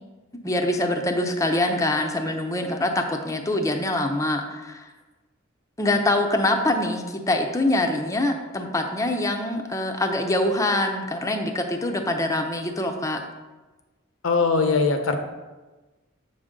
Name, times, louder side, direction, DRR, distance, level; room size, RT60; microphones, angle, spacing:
voice 1, 0.4-4.8 5.8-13.2, left 1 dB, 15° left, 4 dB, 0.6 m, -24 dB
voice 2, 14.2-15.2, left 4 dB, 85° left, 6 dB, 0.8 m, -21 dB
7.9 x 6.5 x 3.7 m, 1.2 s
head